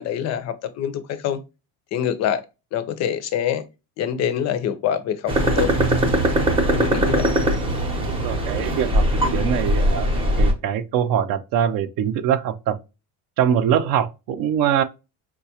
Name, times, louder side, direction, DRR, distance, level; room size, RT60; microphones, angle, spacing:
voice 1, 0.0-1.4 1.9-2.4 2.7-3.7 4.0-5.7 6.7-7.3, left 9 dB, 45° left, 0.4 m, -25 dB
sound 1, 5.3-10.5, right 1 dB, 15° right, 0.6 m, -20 dB
voice 2, 8.2-9.1 9.3-10.1 10.4-12.8 13.4-14.8, right 9 dB, 60° right, 0.6 m, -22 dB
4.8 x 2.2 x 2.7 m
cardioid pair, 165°, 39 cm